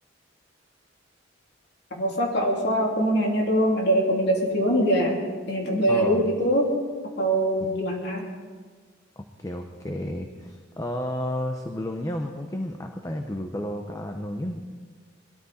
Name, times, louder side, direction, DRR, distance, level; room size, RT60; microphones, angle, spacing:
voice 1, 2.0-5.2 5.5-6.7 7.2-8.3, equal, 65° left, -1 dB, 3.1 m, -23 dB
voice 2, 5.9-6.2 9.2-14.6, left 1 dB, 20° left, 4 dB, 0.8 m, -32 dB
21.0 x 13.5 x 4.3 m, 1.5 s
head